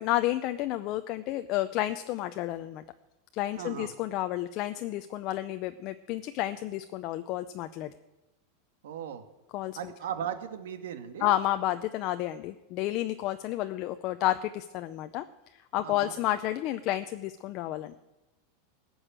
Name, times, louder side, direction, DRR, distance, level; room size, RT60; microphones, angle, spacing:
voice 1, 0.0-2.8 3.3-7.9 9.5-9.8 11.2-18.0, left 14 dB, 35° left, 9 dB, 0.5 m, -31 dB
voice 2, 3.6-3.9 8.8-9.2 9.8-11.3 15.8-16.2, right 9 dB, 90° right, 8 dB, 1.6 m, -37 dB
18.5 x 6.4 x 8.9 m, 1.0 s
supercardioid pair, 170°, 0 cm